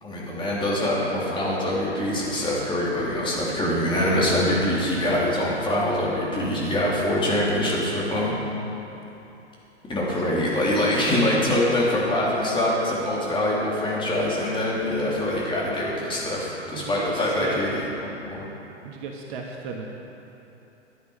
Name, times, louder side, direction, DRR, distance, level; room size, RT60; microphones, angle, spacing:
voice 1, 0.0-8.3 9.9-18.4, left 1 dB, 15° left, -6 dB, 3.1 m, -24 dB
voice 2, 10.3-10.8 16.7-17.6 18.8-19.8, right 5 dB, 45° right, 0 dB, 1.5 m, -34 dB
14.5 x 10.5 x 5.1 m, 3.0 s
figure-of-eight pair, 110°, 36 cm